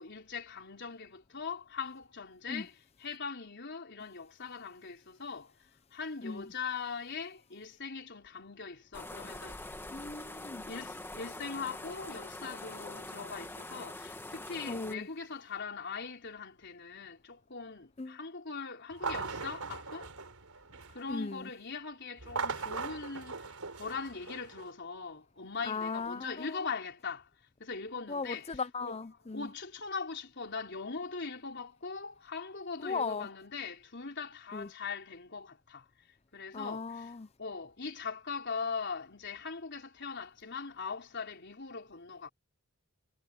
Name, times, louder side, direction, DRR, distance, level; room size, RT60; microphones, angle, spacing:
voice 1, 0.0-2.7 3.0-5.5 5.9-9.7 10.7-20.1 20.9-27.3 27.6-29.0 29.3-35.9 36.3-37.1 37.4-42.3, left 5 dB, 50° left, 4.2 m, -41 dB
voice 2, 6.2-6.5 9.9-10.7 14.7-15.1 18.0-18.2 21.1-21.5 25.6-26.6 28.1-29.5 32.8-33.3 34.5-34.7 36.5-37.3, left 4 dB, 30° left, 0.6 m, -37 dB
sound 1, 8.9-14.9, left 2 dB, 10° left, 1.7 m, -44 dB
sound 2, 18.9-21.1 22.2-24.7, right 4 dB, 80° right, 4.0 m, -39 dB
head